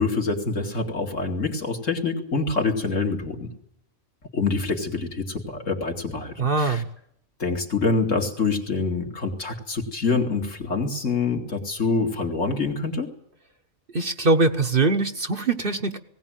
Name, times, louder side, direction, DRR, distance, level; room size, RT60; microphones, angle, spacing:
voice 1, 0.0-3.5 4.3-6.8 7.4-13.1, left 4 dB, 65° left, 2 dB, 2.8 m, -26 dB
voice 2, 6.4-6.8 13.9-16.0, right 3 dB, 45° right, 6 dB, 1.2 m, -22 dB
19.5 x 17.5 x 9.1 m, 0.72 s
omnidirectional pair, 1.4 m